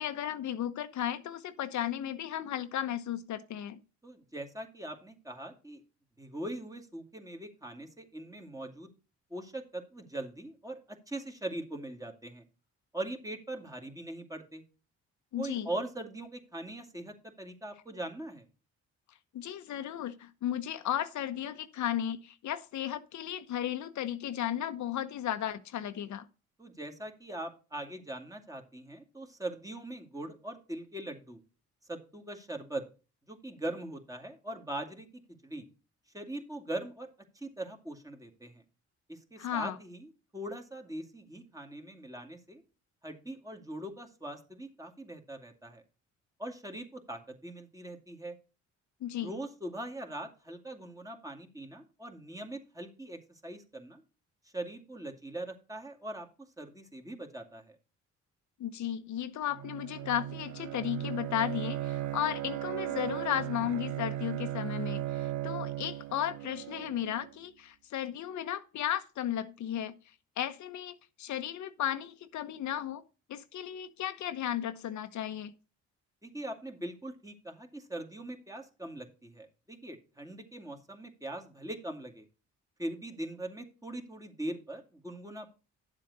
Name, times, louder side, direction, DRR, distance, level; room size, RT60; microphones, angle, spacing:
voice 1, 0.0-3.8 15.3-15.7 19.3-26.3 39.4-39.8 49.0-49.3 58.6-69.9 70.4-73.0 73.3-75.5, left 11 dB, 70° left, 1.0 m, -34 dB
voice 2, 4.0-5.8 6.2-8.9 9.3-12.4 12.9-14.6 15.4-18.4 26.6-31.4 31.9-32.8 33.3-35.1 35.4-35.7 36.1-37.1 37.3-38.6 39.1-42.6 43.0-45.8 46.4-48.4 49.2-54.0 54.5-56.3 56.6-57.8 76.2-82.3 82.8-85.5, right 1 dB, 10° right, 2.3 m, -41 dB
Bowed string instrument, 59.5-67.3, right 14 dB, 70° right, 0.9 m, -37 dB
11.0 x 7.5 x 4.1 m
cardioid pair, 90°, 30 cm